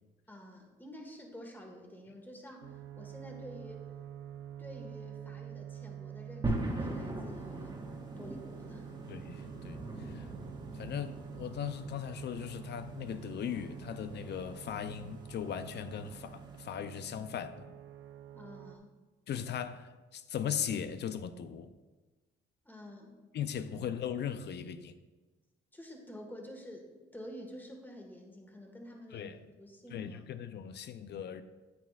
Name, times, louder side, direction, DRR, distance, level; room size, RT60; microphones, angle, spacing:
voice 1, 0.3-3.9 4.6-8.9 18.3-18.9 22.6-23.2 25.7-30.2, equal, 10° left, 1.6 m, -49 dB
sound 1, 2.6-18.8, right 10 dB, 80° right, 0.5 m, -48 dB
sound 2, 6.4-16.6, right 1 dB, 20° right, 1.3 m, -42 dB
voice 2, 9.1-10.3 10.7-17.8 19.3-21.7 23.3-25.0 29.1-29.4 29.9-31.4, left 8 dB, 60° left, 0.5 m, -38 dB
9.2 x 8.6 x 2.4 m
cardioid pair, 90°, 20 cm